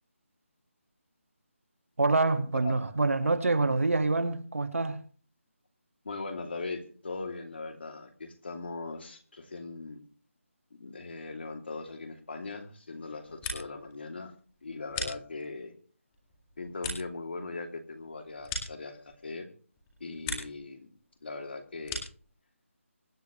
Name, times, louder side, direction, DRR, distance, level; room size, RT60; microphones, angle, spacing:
voice 1, 2.0-5.0, right 3 dB, 75° right, 1.8 m, -26 dB
voice 2, 6.0-10.0 10.7-14.3 14.6-15.8 16.6-19.5 20.0-20.9 21.2-22.0, left 3 dB, 50° left, 2.8 m, -40 dB
sound 1, 13.1-13.9 14.2-15.7 16.1-19.4 19.7-20.7 21.0-22.3, left 3 dB, 10° left, 2.1 m, -40 dB
25.0 x 9.4 x 3.2 m
figure-of-eight pair, 175°, 7 cm